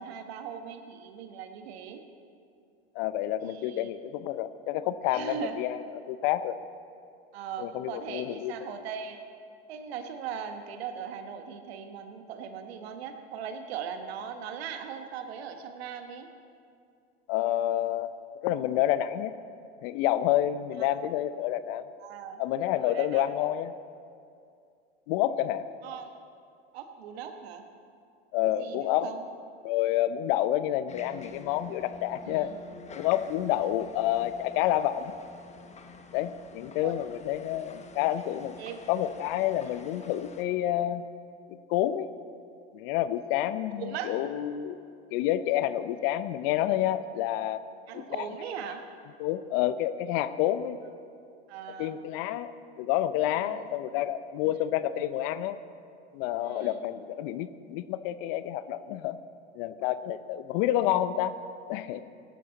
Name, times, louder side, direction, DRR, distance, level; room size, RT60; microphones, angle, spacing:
voice 1, 0.0-2.0 3.4-3.9 5.1-5.6 7.3-9.2 9.7-16.3 22.0-22.4 22.7-23.3 25.8-26.2 26.7-27.6 28.4-29.2 32.2-32.6 33.5-33.7 36.8-37.0 38.6-38.8 43.8-44.2 47.9-48.8 51.5-52.0 53.3-53.7 54.4-54.6 56.4-56.9, right 7 dB, 70° right, 7 dB, 1.3 m, -39 dB
voice 2, 2.9-5.8 6.1-6.6 7.6-8.7 17.3-18.1 18.4-19.3 19.8-21.9 22.4-23.7 25.1-25.6 28.3-29.1 29.6-32.5 32.9-35.1 36.1-38.5 38.9-41.0 41.7-42.1 42.7-44.7 45.1-47.6 47.9-48.3 49.2-50.8 51.8-52.5 52.8-55.6 56.1-59.2 59.5-61.3 61.7-62.0, left 12 dB, 55° left, 14 dB, 0.7 m, -29 dB
sound 1, 30.9-40.4, left 3 dB, 20° left, 1.1 m, -49 dB
18.0 x 11.0 x 4.1 m, 2.4 s
hypercardioid pair, 90°, 32 cm